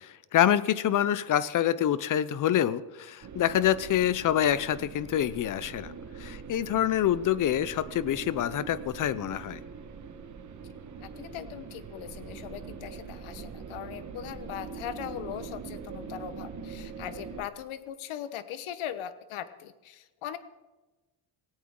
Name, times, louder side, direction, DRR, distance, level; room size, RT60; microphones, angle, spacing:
voice 1, 0.0-5.9 6.2-9.6, left 11 dB, 45° left, 18 dB, 0.4 m, -26 dB
sound 1, 3.2-17.4, right 5 dB, 35° right, 1.2 m, -43 dB
voice 2, 11.0-20.4, left 10 dB, 75° left, 12 dB, 1.2 m, -40 dB
17.5 x 17.0 x 3.7 m, 1.1 s
cardioid pair, 180°, 49 cm